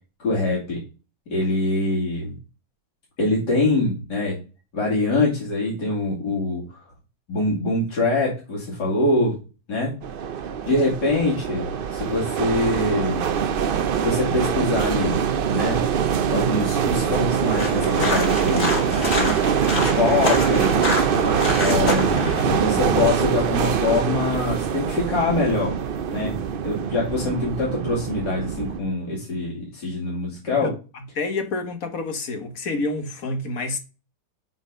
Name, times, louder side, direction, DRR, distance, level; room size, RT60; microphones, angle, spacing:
voice 1, 0.2-0.8 1.3-2.4 3.2-4.4 4.7-6.8 7.3-9.4 9.7-9.9 10.6-13.3 14.0-15.2 15.5-15.8 16.3-19.4 20.0-20.8 21.5-22.2 22.5-25.7 26.1-26.3 26.6-30.7, left 2 dB, 75° left, 3.3 m, -24 dB
sound 1, 10.0-28.8, right 7 dB, 80° right, 0.5 m, -23 dB
sound 2, 17.6-23.1, left 2 dB, 40° left, 2.1 m, -27 dB
voice 2, 31.1-33.8, left 3 dB, 55° left, 1.5 m, -28 dB
8.0 x 4.1 x 5.2 m
omnidirectional pair, 1.8 m